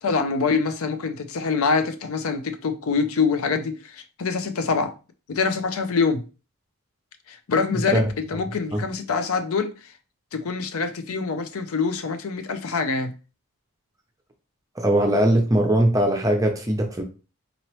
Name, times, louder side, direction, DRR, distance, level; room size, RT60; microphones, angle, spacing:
voice 1, 0.0-4.9 5.3-6.3 7.3-9.7 10.3-13.1, left 5 dB, 75° left, 0.5 m, -25 dB
voice 2, 14.8-17.0, right 1 dB, 15° right, 0.6 m, -20 dB
4.0 x 3.0 x 3.0 m
head